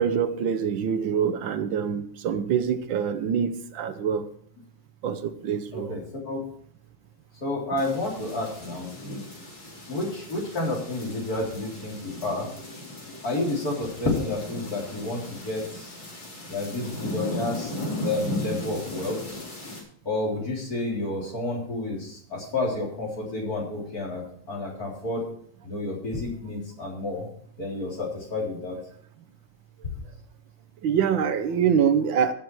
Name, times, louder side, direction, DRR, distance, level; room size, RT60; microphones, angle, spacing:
voice 1, 0.0-4.3 5.0-6.0 30.8-32.3, right 7 dB, 80° right, 10 dB, 1.6 m, -25 dB
voice 2, 5.7-6.4 7.4-8.9 9.9-12.5 13.2-16.0 16.5-17.7 18.0-19.4 20.1-25.2 25.6-27.3 27.6-28.8, left 2 dB, 50° left, -3 dB, 4.0 m, -30 dB
sound 1, 7.8-19.8, left 1 dB, 70° left, 4.3 m, -37 dB
16.5 x 6.8 x 4.6 m, 0.62 s
omnidirectional pair, 2.1 m